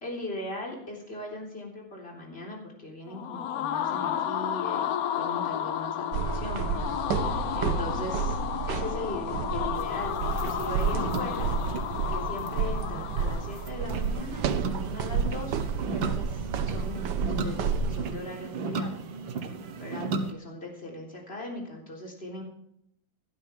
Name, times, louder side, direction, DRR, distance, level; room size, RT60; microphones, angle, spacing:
voice 1, 0.0-8.4 8.7-11.5 12.1-15.7 15.9-19.0 19.8-22.4, left 1 dB, 30° left, -1 dB, 3.9 m, -39 dB
sound 1, 3.1-13.9, left 10 dB, 65° left, 1.0 m, -32 dB
sound 2, 6.1-18.1, right 6 dB, 65° right, 1.4 m, -31 dB
sound 3, 9.7-20.3, right 4 dB, 85° right, 2.0 m, -36 dB
17.5 x 12.0 x 3.5 m, 0.76 s
omnidirectional pair, 2.1 m